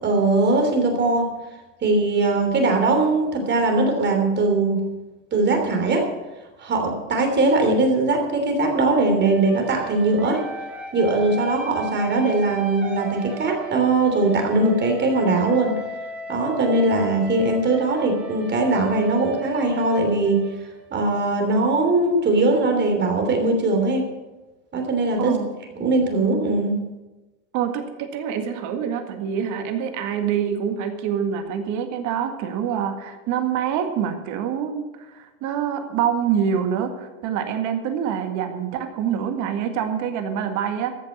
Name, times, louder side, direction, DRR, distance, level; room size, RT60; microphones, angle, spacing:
voice 1, 0.0-1.3 1.8-4.9 5.3-6.1 6.6-10.4 10.9-15.8 16.3-20.5 20.9-24.1 24.7-25.3 25.8-26.8, right 2 dB, 30° right, 3 dB, 3.1 m, -20 dB
sound 1, 9.2-21.0, right 2 dB, 5° right, 2.8 m, -35 dB
voice 2, 27.5-40.9, right 8 dB, 50° right, 7 dB, 1.9 m, -26 dB
14.0 x 6.8 x 8.5 m, 1.1 s
supercardioid pair, 110°, 37 cm